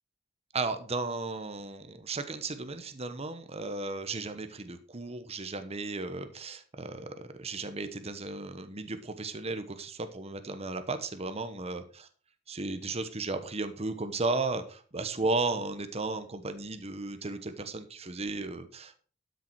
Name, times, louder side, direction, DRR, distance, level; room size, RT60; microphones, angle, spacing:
voice 1, 0.5-11.8 12.5-19.0, right 3 dB, 30° right, 9 dB, 1.1 m, -35 dB
12.0 x 6.9 x 4.6 m, 0.41 s
head